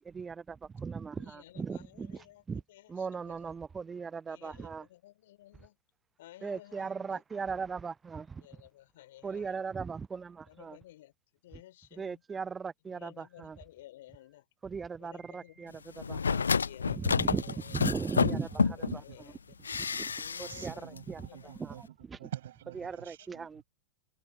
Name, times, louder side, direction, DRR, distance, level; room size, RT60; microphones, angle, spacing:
voice 1, 0.1-2.1 2.5-2.6 2.9-4.8 6.4-8.4 9.2-10.7 12.0-13.1 14.7-15.7 16.1-16.4 17.2-17.4 17.7-19.0 20.0-20.1 20.4-20.7 21.1-21.2 21.6-21.7 22.8-23.6, right 5 dB, 15° right, 0.5 m, -37 dB
voice 2, 1.2-3.6 4.2-5.8 6.2-7.2 8.3-9.7 10.5-11.1 11.4-12.2 12.8-14.5 15.0-16.0 16.5-18.1 18.7-19.5 20.2-21.6 23.0-23.4, left 15 dB, 55° left, 5.9 m, -55 dB
sound 1, 16.0-19.0 19.6-20.7 21.0-21.1, left 5 dB, 75° left, 0.6 m, -29 dB
voice 3, 17.4-17.9 18.8-19.2 20.4-23.6, right 13 dB, 60° right, 6.0 m, -47 dB
figure-of-eight pair, 90°, 0 cm